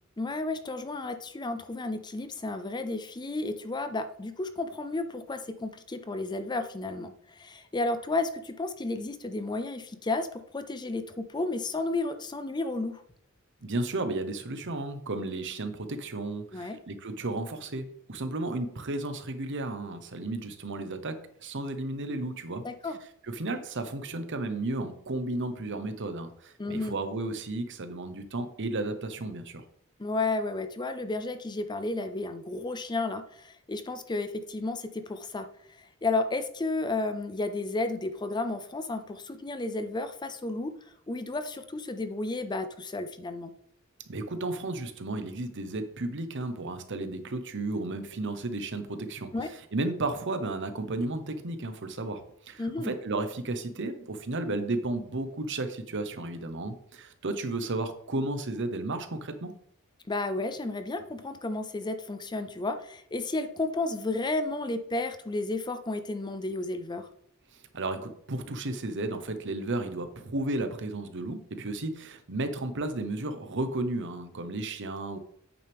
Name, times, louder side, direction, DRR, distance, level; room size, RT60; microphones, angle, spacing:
voice 1, 0.2-13.0 16.5-16.8 22.6-23.0 26.6-27.0 30.0-35.5 36.0-40.8 41.1-43.5 49.3-49.5 52.6-53.0 60.1-67.1, left 2 dB, 20° left, 9 dB, 0.5 m, -32 dB
voice 2, 13.6-22.6 23.2-29.6 44.1-59.5 67.7-75.2, right 2 dB, 60° right, 9 dB, 0.9 m, -33 dB
8.6 x 6.6 x 3.5 m, 0.68 s
head